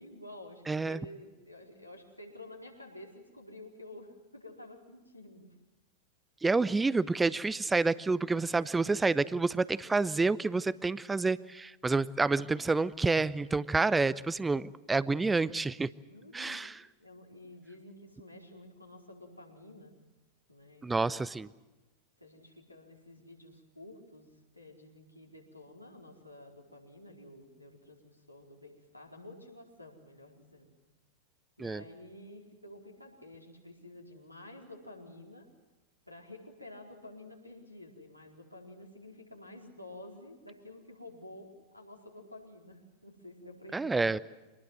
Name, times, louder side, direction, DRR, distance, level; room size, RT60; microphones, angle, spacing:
voice 1, 0.0-5.5 16.0-16.7 17.0-19.9 20.5-21.2 22.2-30.8 31.6-35.5 36.1-44.1, left 1 dB, 90° left, 0 dB, 4.3 m, -51 dB
voice 2, 0.7-1.0 6.4-15.9 16.3-16.8 20.8-21.5 31.6-31.8 43.7-44.2, right 3 dB, 10° right, 19 dB, 0.7 m, -28 dB
25.5 x 20.0 x 7.7 m, 1.1 s
figure-of-eight pair, 90°, 0 cm